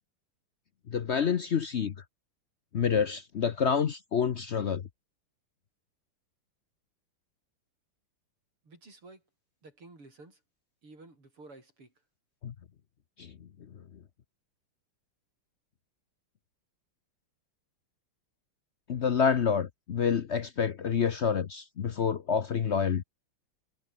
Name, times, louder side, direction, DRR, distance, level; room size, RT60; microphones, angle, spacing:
voice 1, 0.9-1.9 2.7-4.8 12.4-12.5 13.2-13.5 18.9-23.0, left 7 dB, 70° left, 0.6 m, -28 dB
voice 2, 8.6-9.2 9.6-10.4 10.8-11.9, right 2 dB, 85° right, 8.7 m, -52 dB
omnidirectional pair, 2.4 m